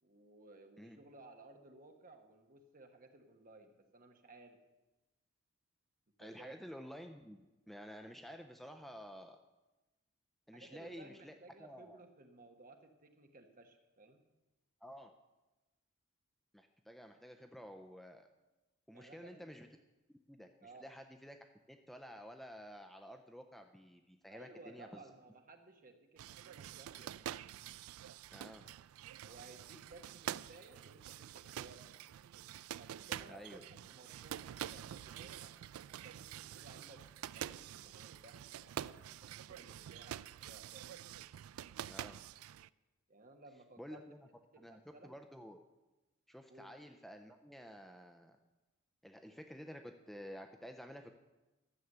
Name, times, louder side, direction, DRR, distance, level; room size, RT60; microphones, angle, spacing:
voice 1, 0.0-4.6 6.2-6.6 10.5-14.2 18.9-19.4 20.6-20.8 24.3-27.4 29.2-32.2 32.8-35.5 35.9-37.0 37.3-41.0 43.1-44.0 44.5-45.1 46.5-46.7, right 2 dB, 40° right, 5 dB, 1.3 m, -58 dB
voice 2, 6.2-9.4 10.5-11.3 11.6-12.0 14.8-15.1 16.5-18.3 18.9-19.7 20.3-21.4 21.7-25.0 28.3-28.6 33.3-33.9 41.9-42.2 43.8-44.3 44.6-45.6 46.3-48.4 49.0-51.1, equal, ahead, 5 dB, 0.5 m, -51 dB
sound 1, 26.2-42.7, right 11 dB, 75° right, 0.3 m, -47 dB
13.0 x 7.1 x 7.9 m, 1.1 s
head